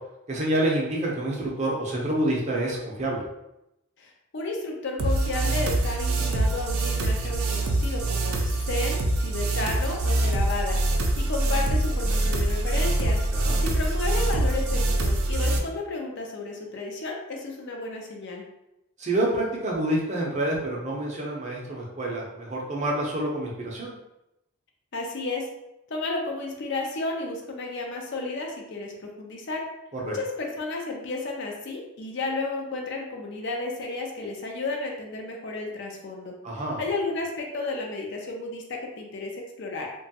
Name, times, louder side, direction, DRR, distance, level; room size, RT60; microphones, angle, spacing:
voice 1, 0.3-3.2 13.3-13.6 19.0-23.9 30.0-30.2 36.4-36.8, right 1 dB, 30° right, -3 dB, 0.5 m, -27 dB
voice 2, 4.0-13.2 13.6-18.4 24.9-25.5 25.9-29.7 30.1-36.3 36.8-39.9, left 3 dB, 55° left, 1 dB, 0.5 m, -32 dB
sound 1, 5.0-15.6, right 2 dB, 80° right, 0.4 m, -24 dB
2.9 x 2.3 x 2.7 m, 0.89 s
head